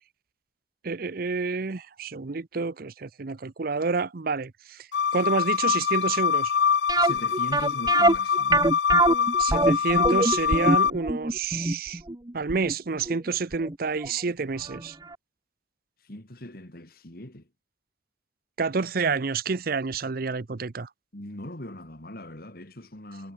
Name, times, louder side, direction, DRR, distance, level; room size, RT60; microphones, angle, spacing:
voice 1, 0.8-6.5 9.4-12.0 12.3-15.0 18.6-20.9, right 4 dB, 55° right, 0.7 m, -29 dB
sound 1, 4.9-10.9, left 7 dB, 90° left, 0.5 m, -24 dB
sound 2, 6.9-13.7 14.0-14.1 14.7-14.8 15.1-15.2, right 2 dB, 25° right, 1.0 m, -24 dB
voice 2, 7.0-8.6 16.0-17.5 21.1-23.3, left 1 dB, 60° left, 3.2 m, -40 dB
head